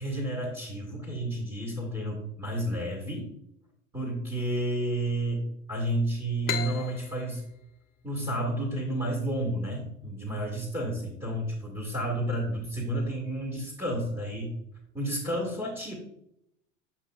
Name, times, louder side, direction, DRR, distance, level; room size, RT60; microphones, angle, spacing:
voice 1, 0.0-3.3 3.9-7.4 8.0-14.6 14.9-15.9, right 1 dB, 15° right, -2 dB, 1.8 m, -31 dB
sound 1, 6.4-9.9, left 9 dB, 25° left, 0.6 m, -38 dB
7.6 x 5.3 x 2.3 m, 0.81 s
hypercardioid pair, 85°, 37 cm